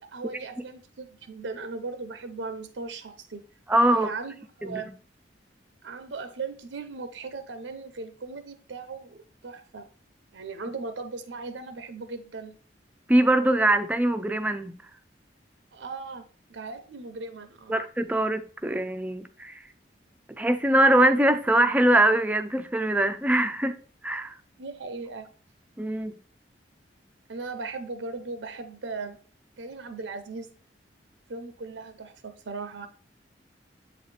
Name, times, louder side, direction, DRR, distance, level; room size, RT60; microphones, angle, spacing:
voice 1, 0.0-3.4 3.9-5.0 5.8-9.9 10.3-12.6 15.7-17.8 24.6-25.3 27.3-29.2 29.6-30.5 31.3-32.9, right 4 dB, 85° right, 0.6 m, -38 dB
voice 2, 3.7-4.1 4.6-4.9 13.1-14.7 17.7-19.6 20.4-23.8 24.0-24.4 25.8-26.1, right 1 dB, 10° right, 0.3 m, -22 dB
7.5 x 4.0 x 3.2 m
head